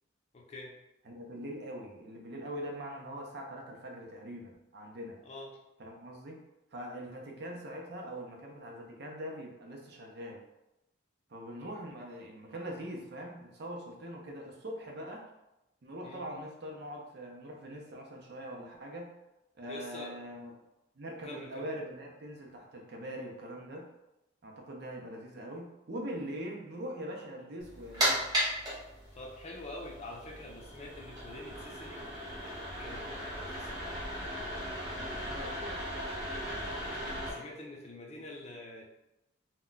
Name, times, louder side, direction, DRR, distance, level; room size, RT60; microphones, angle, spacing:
voice 1, 0.3-0.7 5.2-5.5 16.0-16.2 19.6-20.1 21.2-21.7 29.1-32.1 32.8-33.9 35.4-35.7 37.2-38.8, left 2 dB, 35° left, -1 dB, 0.5 m, -46 dB
voice 2, 1.1-5.2 5.8-6.4 6.7-10.4 11.3-15.3 15.8-19.1 19.6-20.5 21.0-23.9 24.4-28.3 33.4-33.7 34.9-35.8, equal, 55° right, 0 dB, 0.5 m, -42 dB
sound 1, 27.6-37.3, equal, 20° right, 1.0 m, -36 dB
2.2 x 2.2 x 3.8 m, 0.93 s
head